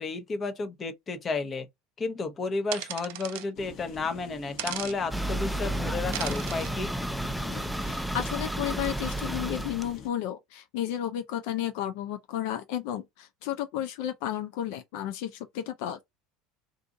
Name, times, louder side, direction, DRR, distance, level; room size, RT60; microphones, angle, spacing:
voice 1, 0.0-1.7 2.0-6.9, left 3 dB, 30° left, 0.8 m, -32 dB
sound 1, 2.7-3.5 4.6-5.0 6.1-6.7, right 14 dB, 75° right, 0.4 m, -36 dB
sound 2, 3.5-10.1, left 7 dB, 55° left, 1.1 m, -45 dB
sound 3, 5.1-9.9, right 1 dB, ahead, 0.3 m, -32 dB
voice 2, 7.8-16.0, left 11 dB, 75° left, 0.5 m, -33 dB
2.6 x 2.5 x 3.7 m
supercardioid pair, 105°, 0 cm